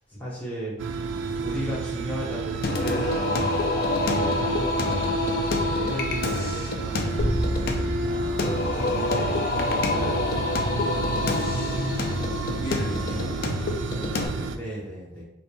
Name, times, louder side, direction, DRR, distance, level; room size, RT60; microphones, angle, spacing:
voice 1, 0.1-0.8 1.4-3.5 4.0-5.2 5.7-7.9 8.4-10.4 10.9-11.8 14.5-15.2, equal, 10° left, -7 dB, 1.1 m, -36 dB
sound 1, 0.8-14.6, right 4 dB, 85° right, 0.3 m, -30 dB
Singing, 2.6-14.3, left 3 dB, 50° left, 0.4 m, -27 dB
voice 2, 2.8-4.0 5.5-5.7 8.0-8.7 11.9-13.8 14.1-14.5, equal, 75° left, -3 dB, 1.0 m, -38 dB
sound 2, 7.2-9.7, equal, 30° left, 0.8 m, -30 dB
3.9 x 2.2 x 3.4 m, 0.78 s
head